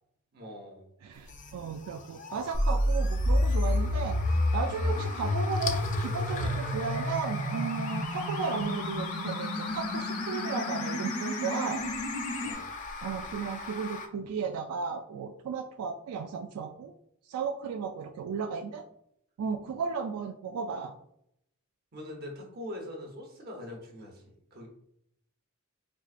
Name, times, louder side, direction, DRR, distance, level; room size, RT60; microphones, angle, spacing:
voice 1, 0.3-0.9 12.4-12.7 21.9-24.7, left 1 dB, 45° right, 1 dB, 0.8 m, -43 dB
voice 2, 1.0-11.8 13.0-16.9 17.3-18.9 19.4-20.9, right 5 dB, 85° right, 9 dB, 0.3 m, -35 dB
sound 1, 1.1-14.1, left 3 dB, 35° left, 0.4 m, -39 dB
sound 2, 2.5-12.5, left 1 dB, 85° left, 0.7 m, -30 dB
4.6 x 2.5 x 2.4 m, 0.74 s
head